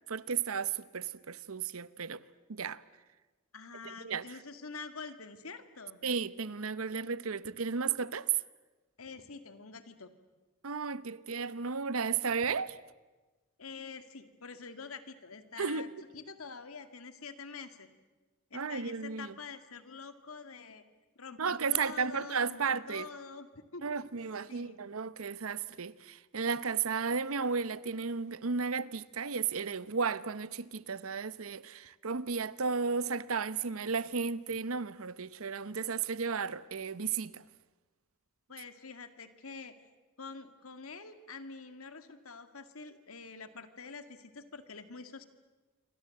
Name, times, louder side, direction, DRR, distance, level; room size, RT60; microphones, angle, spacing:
voice 1, 0.1-2.2 2.5-2.8 3.8-4.4 6.0-8.3 10.6-12.7 15.6-15.9 18.5-19.4 21.4-23.1 23.8-37.4, right 5 dB, 75° right, 0.9 m, -34 dB
voice 2, 3.5-6.0 9.0-10.1 13.6-17.9 18.5-20.8 21.2-23.9 24.5-24.8 38.5-39.8 40.2-45.2, left 4 dB, 80° left, 2.0 m, -46 dB
27.5 x 24.5 x 7.7 m
head